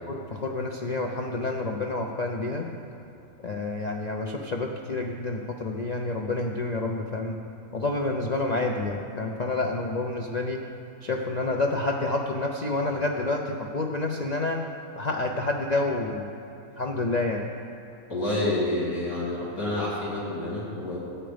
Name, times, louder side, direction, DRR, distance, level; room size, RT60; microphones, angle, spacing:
voice 1, 0.1-2.7 3.4-7.4 7.7-10.6 11.0-14.6 15.0-16.3 16.8-17.4, left 2 dB, 40° left, 1 dB, 0.6 m, -28 dB
voice 2, 18.1-21.0, left 1 dB, 80° left, -7 dB, 3.4 m, -28 dB
14.5 x 9.0 x 5.1 m, 2.8 s
omnidirectional pair, 1.5 m